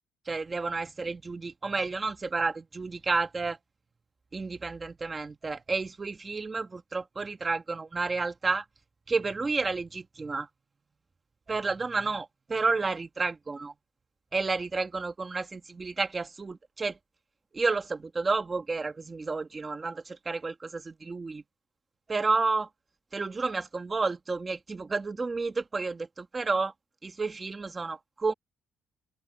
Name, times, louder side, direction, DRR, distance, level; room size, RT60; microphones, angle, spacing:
voice 1, 0.2-3.6 4.3-8.6 9.1-10.5 11.5-13.7 14.3-17.0 17.5-21.4 22.1-22.7 23.1-26.7 27.0-28.3, right 3 dB, 20° right, 1.8 m, -31 dB
open air
cardioid pair, 175°, 0 cm